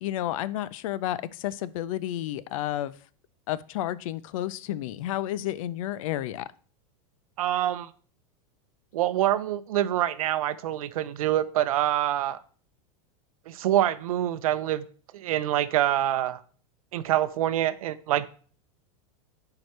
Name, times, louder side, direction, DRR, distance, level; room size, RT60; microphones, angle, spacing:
voice 1, 0.0-2.9 3.5-6.5, left 13 dB, 70° left, 18 dB, 0.5 m, -31 dB
voice 2, 7.4-7.9 8.9-12.4 13.5-14.9 15.1-16.4 16.9-18.3, right 12 dB, 85° right, 14 dB, 0.6 m, -26 dB
10.5 x 4.8 x 3.2 m, 0.43 s
supercardioid pair, 135°, 18 cm